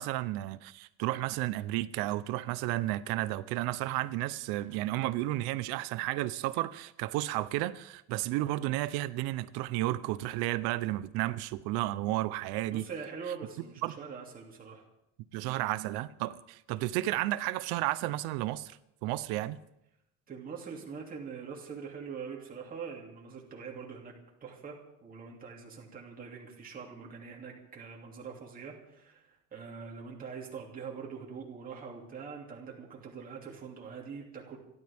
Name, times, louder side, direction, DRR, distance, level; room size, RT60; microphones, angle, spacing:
voice 1, 0.0-12.8 13.8-14.0 15.3-19.6, right 16 dB, 80° right, 0.9 m, -32 dB
voice 2, 12.7-14.8 15.5-15.7 20.3-24.1 24.4-24.8 25.0-34.6, right 6 dB, 25° right, 2.8 m, -43 dB
28.5 x 12.5 x 3.6 m
cardioid pair, 170°, 37 cm